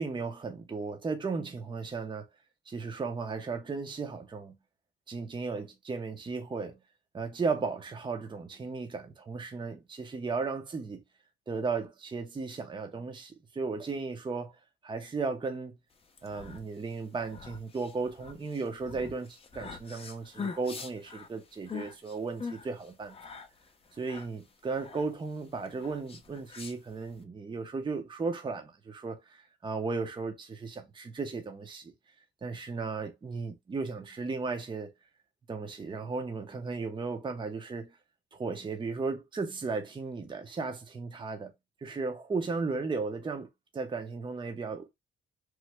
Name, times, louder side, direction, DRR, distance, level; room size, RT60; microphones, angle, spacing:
voice 1, 0.0-2.3 2.7-4.5 5.1-6.8 7.1-11.0 11.5-15.8 16.2-23.2 24.0-31.9 32.4-34.9 35.5-38.0 38.3-41.5 41.8-44.9, right 4 dB, 25° right, 0.7 m, -35 dB
sound 1, 16.0-27.2, left 5 dB, 30° left, 0.6 m, -44 dB
3.1 x 2.1 x 3.3 m
cardioid pair, 90°, 20 cm